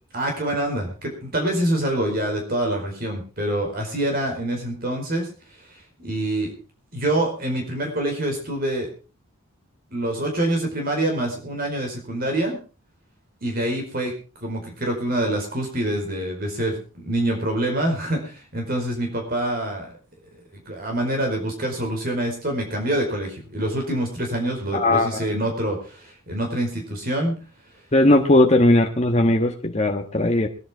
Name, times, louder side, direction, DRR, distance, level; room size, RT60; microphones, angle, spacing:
voice 1, 0.1-5.3 6.0-6.5 6.9-8.9 9.9-12.6 13.4-14.1 14.4-19.9 20.3-20.4 20.7-27.3, right 1 dB, 45° right, 2 dB, 4.8 m, -26 dB
voice 2, 24.7-25.2 27.9-30.5, left 1 dB, 30° left, 2 dB, 1.3 m, -18 dB
21.5 x 11.0 x 4.4 m, 0.35 s
head